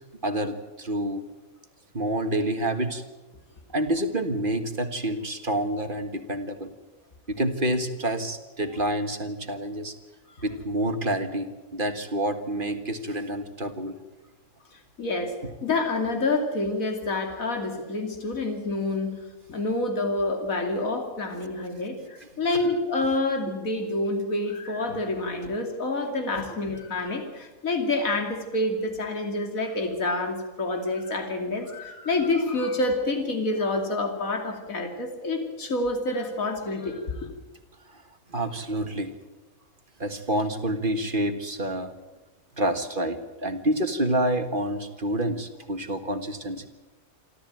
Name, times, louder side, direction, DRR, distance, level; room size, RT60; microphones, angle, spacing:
voice 1, 0.2-1.2 1.9-3.0 3.7-6.7 7.3-9.9 10.4-14.0 22.3-22.6 23.0-23.1 26.4-26.5 37.9-38.0 38.3-39.1 40.0-41.9 42.6-46.7, right 1 dB, 35° right, 7 dB, 1.8 m, -28 dB
voice 2, 15.0-15.3 15.6-19.2 19.5-37.2, left 2 dB, 70° left, 4 dB, 3.2 m, -28 dB
27.5 x 13.5 x 9.0 m, 1.2 s
omnidirectional pair, 1.5 m